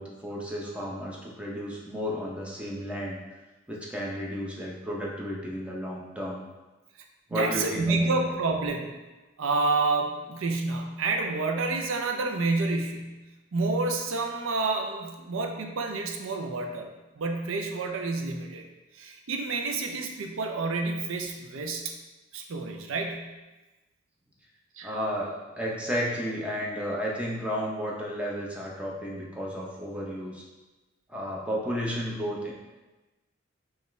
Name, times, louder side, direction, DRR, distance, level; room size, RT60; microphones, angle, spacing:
voice 1, 0.0-3.2 3.7-6.4 7.3-8.1 24.8-30.4 31.1-32.5, equal, 5° right, -4 dB, 0.6 m, -33 dB
voice 2, 7.3-8.9 9.4-13.2 13.5-16.9 17.2-18.6 19.0-21.9 22.3-23.3 24.8-24.9, right 3 dB, 80° right, 3 dB, 0.5 m, -29 dB
5.3 x 2.4 x 3.1 m, 1.1 s
head